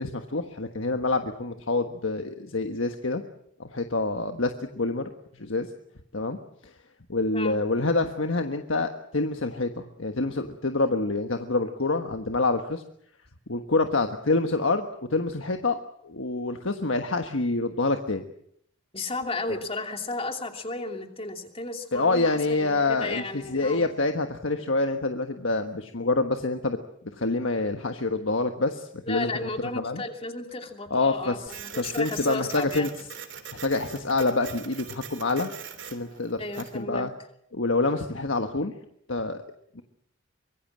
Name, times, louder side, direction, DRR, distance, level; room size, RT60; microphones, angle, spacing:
voice 1, 0.0-3.2 3.6-5.1 5.3-5.7 6.1-6.4 6.6-6.7 7.1-12.8 13.5-15.8 16.0-18.2 19.5-19.6 21.9-26.8 27.1-29.5 29.7-30.0 30.9-32.9 33.6-35.5 35.8-37.1 37.5-38.7 39.1-39.4 39.7-39.8, left 3 dB, 70° left, 6 dB, 1.4 m, -27 dB
voice 2, 18.9-23.9 29.1-32.9 36.4-37.1, left 2 dB, 30° left, 4 dB, 2.8 m, -34 dB
Printer, 31.5-36.8, right 8 dB, 60° right, 3.3 m, -42 dB
24.5 x 22.0 x 7.5 m, 0.70 s
head